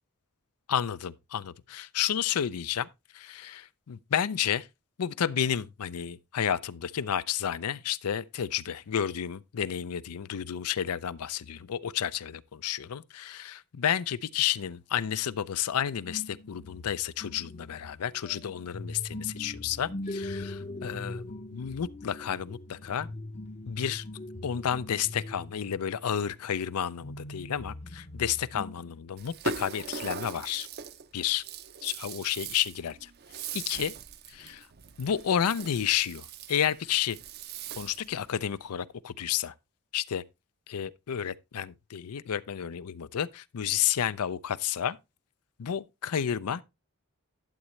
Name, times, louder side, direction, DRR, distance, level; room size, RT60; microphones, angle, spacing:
voice 1, 0.7-2.9 3.1-4.7 5.0-23.1 23.7-24.0 24.4-30.7 31.1-31.4 31.8-33.1 33.5-33.9 34.3-34.7 35.0-37.2 37.8-39.5 39.9-40.2 40.7-45.0 45.6-46.6, left 9 dB, 85° left, 0.5 m, -31 dB
sound 1, 16.1-26.5 27.0-29.0, left 1 dB, 30° left, 0.7 m, -41 dB
Rattle (instrument), 29.2-38.2, right 6 dB, 45° right, 0.6 m, -41 dB
11.5 x 8.2 x 3.1 m
head